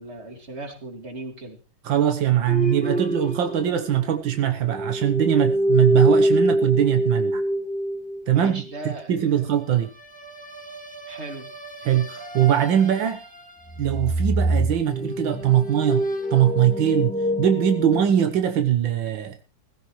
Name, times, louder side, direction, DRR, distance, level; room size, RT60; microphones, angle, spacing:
voice 1, 0.0-1.6 8.3-9.5 11.1-11.5, right 2 dB, 35° right, 4 dB, 2.6 m, -37 dB
voice 2, 1.9-7.4 8.3-9.9 11.9-13.2 13.8-19.4, right 10 dB, 85° right, 7 dB, 1.8 m, -21 dB
sound 1, 2.5-4.4 4.7-8.5 10.1-13.4 13.7-18.0, right 1 dB, 5° left, 1.8 m, -25 dB
17.0 x 15.0 x 3.1 m, 0.32 s
omnidirectional pair, 2.0 m